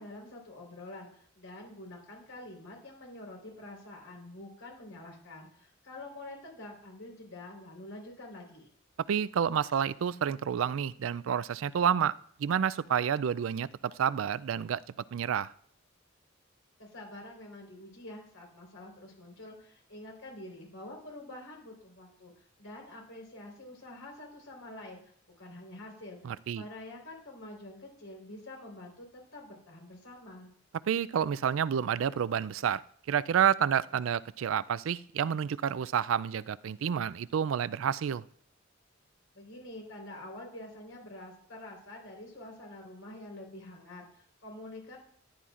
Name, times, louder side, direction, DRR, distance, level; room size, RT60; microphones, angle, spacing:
voice 1, 0.0-8.7 16.8-25.0 25.4-30.5 39.3-45.0, left 1 dB, 90° left, 0 dB, 4.2 m, -47 dB
voice 2, 9.1-12.1 12.4-14.8 15.1-15.5 26.2-26.6 30.9-32.8 33.1-38.2, right 8 dB, 70° right, 18 dB, 0.4 m, -29 dB
14.0 x 11.0 x 2.5 m, 0.63 s
head